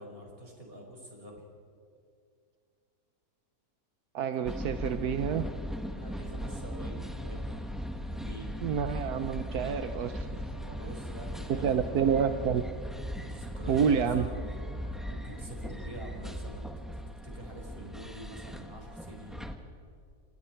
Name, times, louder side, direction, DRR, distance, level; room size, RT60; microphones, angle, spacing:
voice 1, 0.0-1.4 4.4-4.5 4.9-5.0 5.4-7.5 8.1-8.6 10.6-11.9 13.2-14.5 15.1-19.4, right 1 dB, 35° right, 1 dB, 4.9 m, -46 dB
voice 2, 4.1-5.5 8.6-10.4 11.6-12.6 13.7-14.3, right 7 dB, 80° right, 8 dB, 1.4 m, -28 dB
sound 1, 4.4-19.6, equal, ahead, 1.5 m, -38 dB
sound 2, 5.4-15.4, left 1 dB, 20° left, 3.5 m, -56 dB
29.5 x 26.5 x 4.5 m, 2.2 s
omnidirectional pair, 1.6 m